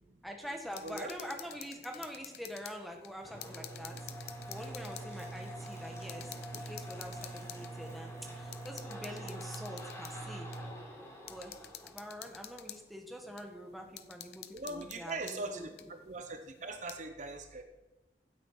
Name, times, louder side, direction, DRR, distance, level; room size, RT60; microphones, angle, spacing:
voice 1, 0.2-4.0 4.5-6.3 6.6-10.5 11.3-15.9, equal, ahead, 2 dB, 1.6 m, -45 dB
sound 1, 0.7-2.8 3.0-5.1 5.7-5.8 6.1-7.7 8.5-10.1 10.5-10.6 11.3-12.8 13.4-13.5 14.0-15.4 15.8-15.9 16.7-17.0, left 12 dB, 65° left, 0.8 m, -49 dB
voice 2, 0.8-1.1 14.5-17.6, right 2 dB, 45° right, 7 dB, 0.9 m, -41 dB
sound 2, 3.2-12.8, right 1 dB, 15° left, 3.9 m, -44 dB
16.0 x 9.0 x 5.9 m, 1.1 s
head